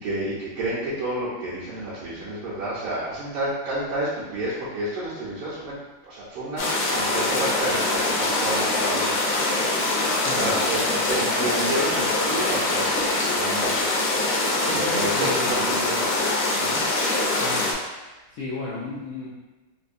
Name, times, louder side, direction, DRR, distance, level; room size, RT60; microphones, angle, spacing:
voice 1, 0.0-5.8 6.1-10.0 10.4-13.8 14.7-16.2 16.6-16.8, right 1 dB, 80° right, -10 dB, 1.7 m, -30 dB
sound 1, 6.6-17.7, left 2 dB, 70° left, 1.3 m, -23 dB
voice 2, 10.2-10.6 14.6-15.5 17.4-17.8 18.3-19.3, left 3 dB, 90° left, -8 dB, 0.7 m, -32 dB
4.4 x 2.6 x 2.5 m, 1.1 s
omnidirectional pair, 2.4 m